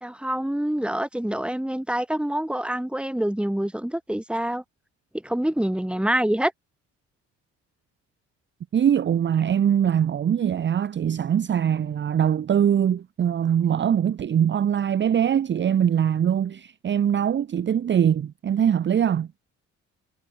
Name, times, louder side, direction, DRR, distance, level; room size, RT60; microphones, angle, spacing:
voice 1, 0.0-4.6 5.2-6.5, right 1 dB, 5° right, 2.1 m, -26 dB
voice 2, 8.7-19.3, right 9 dB, 40° right, 0.6 m, -22 dB
cardioid pair, 90°, 30 cm